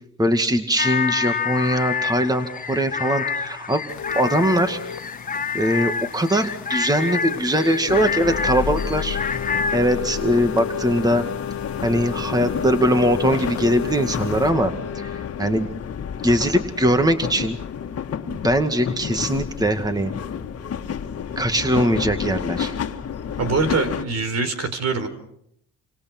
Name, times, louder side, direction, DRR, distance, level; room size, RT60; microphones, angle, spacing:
voice 1, 0.2-3.8 4.1-4.8 5.5-9.2 9.7-11.2 11.8-15.7 16.2-17.6 18.3-20.1 21.4-22.7, equal, 15° right, 7 dB, 2.2 m, -21 dB
sound 1, 0.8-9.8, left 5 dB, 25° left, 1.0 m, -27 dB
sound 2, 3.9-14.5, left 7 dB, 70° left, 1.8 m, -37 dB
sound 3, 7.9-24.0, left 7 dB, 50° left, 2.0 m, -29 dB
voice 2, 23.4-25.1, right 4 dB, 60° right, 9 dB, 4.3 m, -23 dB
29.5 x 26.0 x 6.2 m, 0.77 s
cardioid pair, 90°, 30 cm